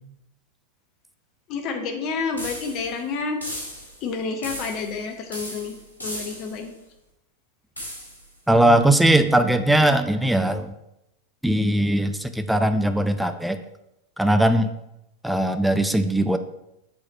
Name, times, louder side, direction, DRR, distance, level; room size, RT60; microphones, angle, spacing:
voice 1, 1.5-3.4 4.0-6.7, left 4 dB, 40° left, 5 dB, 1.0 m, -29 dB
sound 1, 2.4-3.0 3.4-4.0 4.4-5.0 5.3-6.6 7.8-8.3, equal, 80° left, 1.9 m, -36 dB
voice 2, 8.5-10.7 11.4-13.6 14.2-14.7 15.2-16.4, right 1 dB, 5° right, 8 dB, 0.4 m, -20 dB
7.5 x 4.1 x 4.2 m, 0.86 s
figure-of-eight pair, 90°, 0 cm